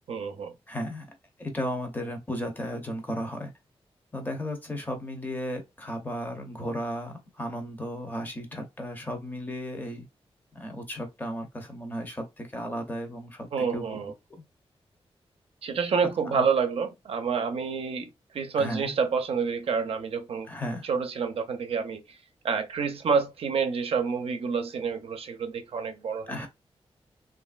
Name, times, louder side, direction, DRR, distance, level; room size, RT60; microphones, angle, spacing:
voice 1, 0.1-0.5 13.5-14.1 15.6-18.1 18.3-20.5 20.8-22.0 22.4-26.3, right 5 dB, 70° right, 0.5 m, -28 dB
voice 2, 0.7-1.1 1.4-3.5 4.1-10.1 10.5-14.0 14.3-14.4 16.2-16.4 18.6-18.9 20.5-20.9 26.3-26.5, equal, 20° left, 0.7 m, -34 dB
3.1 x 2.4 x 2.4 m
wide cardioid pair, 170°, 10 cm